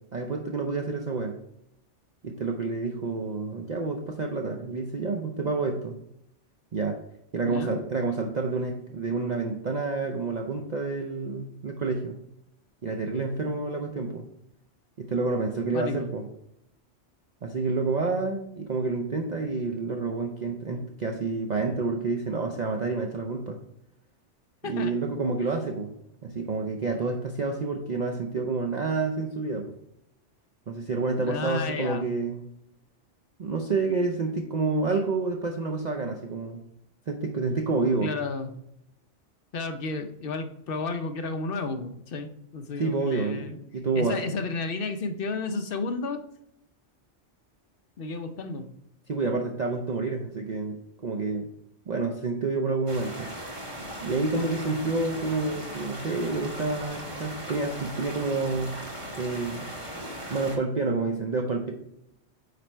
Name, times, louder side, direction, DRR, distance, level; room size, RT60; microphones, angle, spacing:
voice 1, 0.1-1.4 2.2-6.0 6.7-7.0 7.3-12.2 12.8-14.2 15.0-16.2 17.4-23.6 24.6-25.9 26.2-29.7 30.7-32.4 33.4-36.6 37.1-38.1 42.8-44.2 49.1-51.5 51.9-53.3 54.0-58.8 59.1-59.7 60.3-61.7, right 3 dB, 45° right, 2 dB, 0.6 m, -29 dB
voice 2, 7.4-7.7 15.7-16.1 24.6-24.9 31.2-32.0 38.0-38.5 39.5-43.6 43.9-46.2 48.0-48.7 54.3-54.5, left 3 dB, 55° left, 7 dB, 0.8 m, -32 dB
sound 1, 52.9-60.6, equal, 25° right, 1.6 m, -38 dB
9.0 x 3.4 x 4.4 m, 0.77 s
omnidirectional pair, 1.2 m